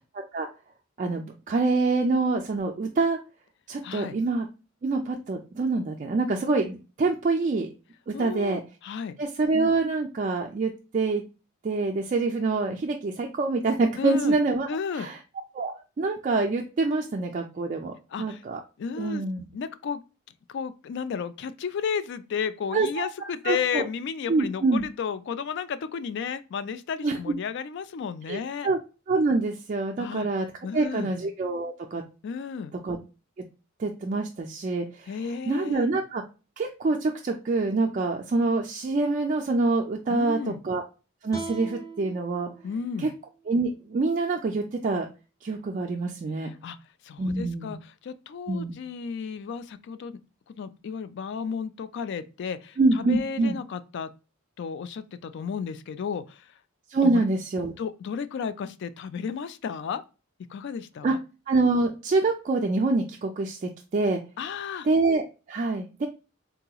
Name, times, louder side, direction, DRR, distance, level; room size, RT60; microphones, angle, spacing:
voice 1, 1.0-3.2 3.7-4.5 4.8-7.7 8.1-8.6 9.2-11.2 11.6-14.7 14.9-15.2 15.5-17.9 18.2-18.6 19.0-19.4 22.7-23.8 24.3-24.8 27.0-27.3 28.3-28.8 29.1-30.5 30.7-32.0 32.8-33.0 33.8-36.2 36.6-40.8 41.2-42.5 43.0-43.1 43.5-45.1 45.4-46.5 47.2-47.7 48.5-48.7 52.8-53.6 56.9-57.7 61.0-61.1 61.5-64.2 64.8-65.2 65.5-66.1, right 3 dB, 35° right, 0.3 m, -26 dB
voice 2, 3.8-4.2 8.1-9.2 14.0-14.4 14.7-15.1 18.1-18.4 18.8-19.2 19.5-20.0 20.5-28.7 30.0-30.3 30.6-31.1 32.2-32.7 35.1-35.9 40.1-40.6 42.6-43.1 46.4-46.8 47.0-50.2 50.5-54.1 54.6-56.5 57.1-57.2 57.8-60.0 60.5-61.2 64.4-64.9, left 6 dB, 55° left, 0.3 m, -33 dB
sound 1, 41.3-44.5, right 3 dB, 15° left, 0.6 m, -42 dB
3.8 x 2.8 x 2.2 m
head